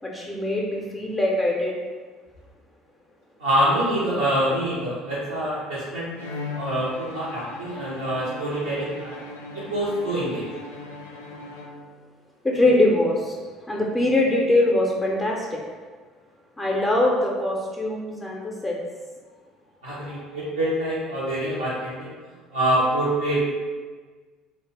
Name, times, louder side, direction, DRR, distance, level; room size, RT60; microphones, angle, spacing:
voice 1, 0.0-1.7 12.4-13.4 13.7-15.6 16.6-18.8, left 1 dB, 15° left, -3 dB, 0.5 m, -22 dB
voice 2, 3.4-6.1 6.5-9.2 9.5-10.5 19.8-22.1 22.5-23.4, right 1 dB, 85° right, -10 dB, 0.6 m, -25 dB
Bowed string instrument, 6.1-12.2, left 3 dB, 85° left, 0.3 m, -38 dB
2.7 x 2.1 x 3.1 m, 1.5 s
hypercardioid pair, 65°, 0 cm